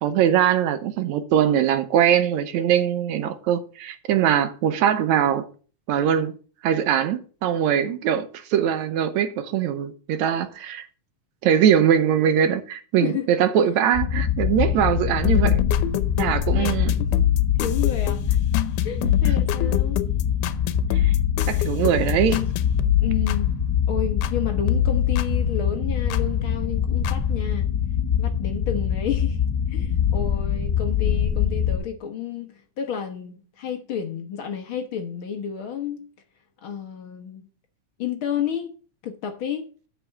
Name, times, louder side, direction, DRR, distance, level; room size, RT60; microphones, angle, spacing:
voice 1, 0.0-5.5 5.9-6.3 6.6-10.9 11.4-15.6 16.2-16.9 20.9-21.1 21.5-22.4, right 9 dB, 75° right, 2.0 m, -21 dB
sound 1, 13.9-31.8, left 8 dB, 35° left, 2.9 m, -24 dB
sound 2, 15.2-24.4 24.7-26.3 27.0-27.1, left 11 dB, 90° left, 2.2 m, -26 dB
voice 2, 16.6-17.1 17.6-18.4 18.8-20.0 23.0-23.6 23.9-27.7 28.2-29.4 29.7-36.0 36.6-37.5 38.0-38.7 39.0-39.7, left 8 dB, 55° left, 1.6 m, -31 dB
8.0 x 6.8 x 6.9 m
omnidirectional pair, 3.5 m